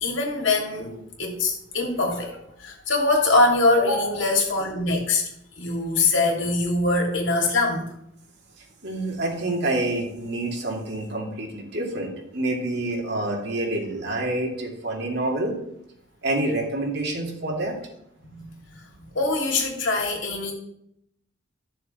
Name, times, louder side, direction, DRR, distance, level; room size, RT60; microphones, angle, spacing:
voice 1, 0.0-5.2 5.6-7.8 18.2-18.6 19.1-20.5, left 2 dB, 75° left, 0 dB, 2.8 m, -23 dB
voice 2, 8.8-15.5 16.2-17.7, right 2 dB, 60° right, -1 dB, 2.6 m, -27 dB
13.0 x 6.8 x 4.4 m, 0.75 s
head